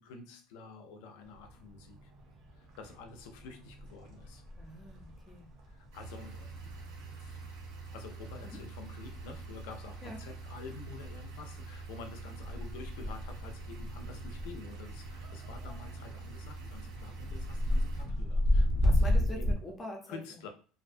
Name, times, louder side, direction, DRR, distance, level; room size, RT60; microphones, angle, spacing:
voice 1, 0.0-2.1 2.5-4.4 5.7-7.4 7.9-19.5 20.1-20.5, left 4 dB, 80° left, 6 dB, 0.5 m, -49 dB
sound 1, 1.2-19.5, left 1 dB, 50° right, 0.7 m, -35 dB
voice 2, 4.6-5.5 8.5-8.6 10.0-10.2 18.8-20.2, left 1 dB, 15° left, 3 dB, 0.5 m, -44 dB
sound 2, 5.9-18.1, right 4 dB, 85° right, 1.1 m, -46 dB
2.4 x 2.1 x 2.5 m, 0.39 s
cardioid pair, 165°, 0 cm